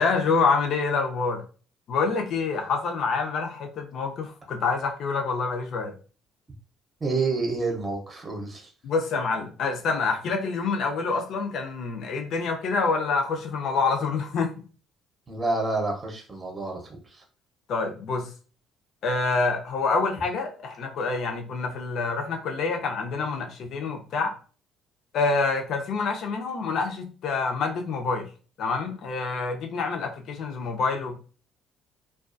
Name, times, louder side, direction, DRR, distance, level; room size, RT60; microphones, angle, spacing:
voice 1, 0.0-1.4 1.9-5.9 8.8-14.6 17.7-18.3 19.0-24.3 25.1-28.3 28.6-31.3, left 4 dB, 60° left, 0.5 m, -27 dB
voice 2, 7.0-8.7 15.3-17.2, right 3 dB, 20° right, 0.7 m, -29 dB
2.3 x 2.3 x 2.5 m
cardioid pair, 110°, 0 cm